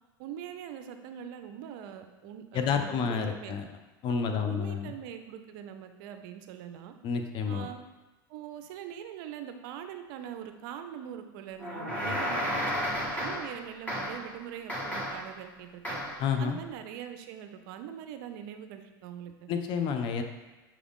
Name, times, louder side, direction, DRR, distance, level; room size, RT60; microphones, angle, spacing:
voice 1, 0.2-3.6 4.1-6.9 7.5-7.8 8.3-16.0 16.4-19.5, right 9 dB, 65° right, 7 dB, 0.5 m, -42 dB
voice 2, 2.5-3.7 4.0-4.9 7.0-7.7 16.2-16.6 19.5-20.2, left 6 dB, 45° left, 6 dB, 0.5 m, -29 dB
sound 1, 11.6-13.6 13.9-14.3 14.7-15.3 15.8-16.2, equal, 10° left, 1.3 m, -32 dB
6.0 x 2.4 x 3.6 m, 1.2 s
supercardioid pair, 105°, 12 cm